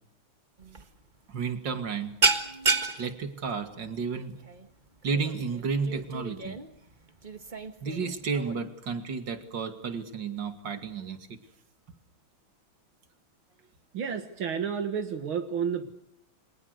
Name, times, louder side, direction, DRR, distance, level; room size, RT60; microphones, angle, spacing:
sound 1, 0.6-0.9 1.1-1.4 1.7-8.6, right 3 dB, 25° right, 1.6 m, -31 dB
voice 1, 1.3-2.2 3.0-4.4 5.0-6.6 7.8-11.4, right 5 dB, 60° right, 8 dB, 2.9 m, -32 dB
voice 2, 13.9-15.9, right 7 dB, 75° right, 8 dB, 2.4 m, -31 dB
30.0 x 24.5 x 6.6 m, 0.73 s
omnidirectional pair, 2.3 m